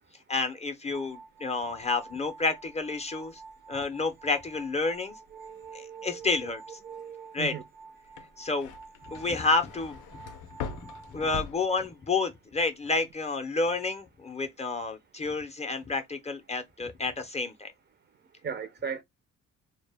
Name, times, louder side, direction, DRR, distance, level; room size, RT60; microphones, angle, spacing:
voice 1, 0.3-3.4 3.7-5.2 5.7-6.8 7.3-7.5 8.4-8.7 9.1-10.2 10.8-17.7, left 3 dB, 20° left, 0.5 m, -30 dB
sound 1, 0.9-11.4, right 4 dB, 80° right, 0.9 m, -50 dB
voice 2, 5.3-6.5 6.8-7.6 18.4-19.0, right 7 dB, 35° right, 0.4 m, -38 dB
sound 2, 8.0-12.3 12.6-13.2, left 7 dB, 85° left, 0.5 m, -42 dB
2.1 x 2.1 x 3.3 m
cardioid pair, 90°, 30 cm